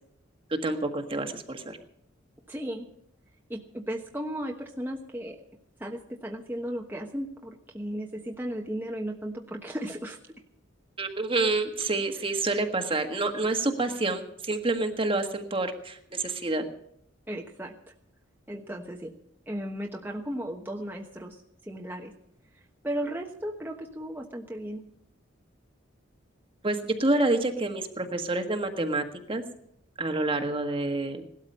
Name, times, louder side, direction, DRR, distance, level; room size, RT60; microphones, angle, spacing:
voice 1, 0.6-1.8 11.0-16.6 26.6-29.4 30.0-31.2, right 2 dB, 25° right, 5 dB, 1.5 m, -28 dB
voice 2, 2.5-2.9 3.5-5.4 5.8-10.2 17.3-17.8 18.5-19.1 19.5-22.1 22.8-24.8, equal, 10° right, 0 dB, 1.2 m, -35 dB
18.0 x 13.0 x 5.5 m, 0.73 s
head